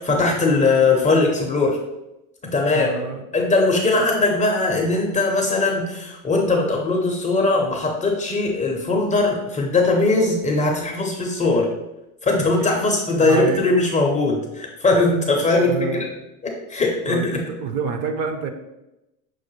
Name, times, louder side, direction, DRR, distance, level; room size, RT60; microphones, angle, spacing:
voice 1, 0.0-1.8 2.4-2.9 3.3-11.7 12.2-16.1 16.7-17.4, left 3 dB, 15° left, 1 dB, 0.4 m, -20 dB
voice 2, 2.4-3.2 13.2-13.6 15.6-16.1 17.1-18.5, right 5 dB, 45° right, 7 dB, 0.5 m, -27 dB
6.1 x 2.1 x 3.0 m, 0.94 s
hypercardioid pair, 90°, 45 cm